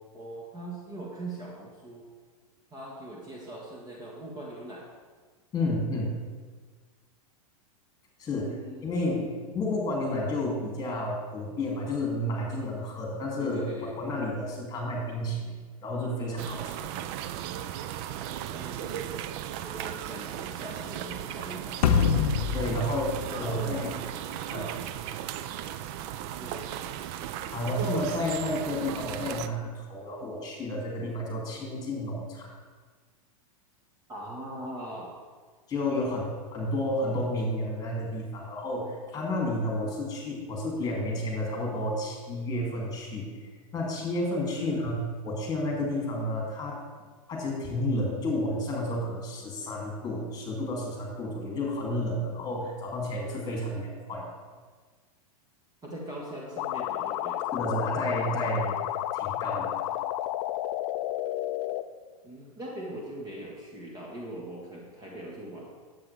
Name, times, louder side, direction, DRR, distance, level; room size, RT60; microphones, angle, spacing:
voice 1, 0.1-2.0 2.7-4.8 8.3-8.9 13.4-13.9 18.0-19.2 19.5-21.8 22.6-22.8 23.3-23.8 26.4-26.8 34.1-35.1 36.0-36.1 44.5-44.9 55.8-57.4 62.2-65.7, right 1 dB, 20° right, -3 dB, 1.4 m, -41 dB
voice 2, 5.5-6.2 8.2-8.5 8.8-16.9 22.5-23.9 24.5-24.6 27.5-32.5 35.7-36.2 36.5-43.3 43.7-45.0 45.2-46.7 47.3-54.2 57.5-58.8 59.1-59.7, left 1 dB, 20° left, -2 dB, 2.6 m, -31 dB
sound 1, 16.4-29.5, right 11 dB, 45° right, 0.4 m, -36 dB
sound 2, 21.8-24.3, left 7 dB, 80° left, 0.7 m, -26 dB
sound 3, 56.6-61.8, left 14 dB, 45° left, 0.4 m, -31 dB
9.4 x 7.9 x 3.4 m, 1.5 s
hypercardioid pair, 120°, 19 cm